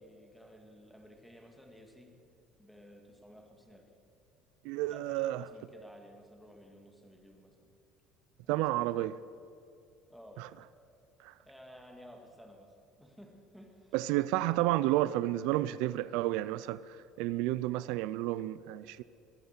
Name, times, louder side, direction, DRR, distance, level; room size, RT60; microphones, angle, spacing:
voice 1, 0.0-2.1 2.6-3.9 4.9-7.7 8.4-9.1 10.1-10.5 11.4-13.9 14.3-14.4, equal, ahead, 2.2 m, -54 dB
voice 2, 4.6-5.4 8.5-9.2 11.2-11.3 13.9-19.0, right 15 dB, 85° right, 0.4 m, -31 dB
21.5 x 8.0 x 6.7 m
cardioid pair, 135°, 0 cm